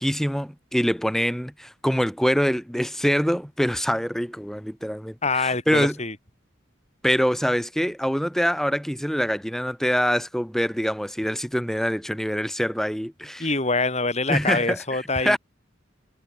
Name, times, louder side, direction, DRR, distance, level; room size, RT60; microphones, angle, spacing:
voice 1, 0.0-6.0 7.0-13.5 14.3-15.4, equal, ahead, 7.8 m, -24 dB
voice 2, 5.2-6.2 13.4-15.4, left 3 dB, 35° left, 5.9 m, -25 dB
head